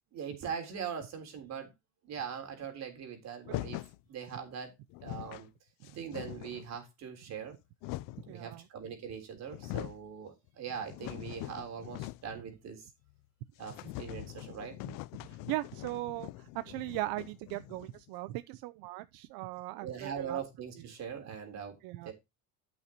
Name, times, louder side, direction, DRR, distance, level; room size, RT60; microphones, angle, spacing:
voice 1, 0.1-1.7 2.0-3.8 4.1-4.7 5.0-5.5 5.9-7.6 8.2-12.9 13.6-14.8 19.8-22.1, right 7 dB, 50° right, 3.6 m, -41 dB
sound 1, 3.4-4.0 4.6-4.7 4.9-5.5 5.8-6.7 7.4-8.3 9.1-9.2 9.4-10.1 10.5-12.4 12.7-12.8 13.1-13.2 13.6-18.1, left 18 dB, 65° left, 0.5 m, -43 dB
voice 2, 8.3-8.6 15.2-20.4 21.8-22.1, right 17 dB, 80° right, 0.7 m, -39 dB
13.0 x 6.4 x 2.9 m
cardioid pair, 155°, 36 cm